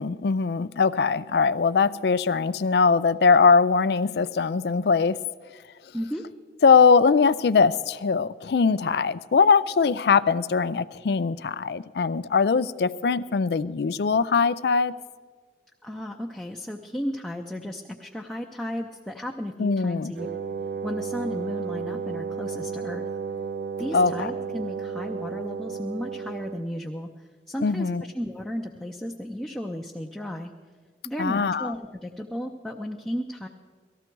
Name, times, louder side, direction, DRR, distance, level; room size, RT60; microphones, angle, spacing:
voice 1, 0.0-5.2 6.6-14.9 19.6-20.1 23.9-24.3 27.6-28.0 31.2-31.7, left 5 dB, 70° left, 16 dB, 0.4 m, -21 dB
voice 2, 15.8-20.3 20.8-23.1 23.8-30.5 31.0-33.5, equal, 5° left, 0 dB, 0.6 m, -34 dB
Wind instrument woodwind instrument, 20.2-26.7, right 5 dB, 65° right, 0.4 m, -33 dB
18.5 x 14.0 x 4.6 m, 1.5 s
head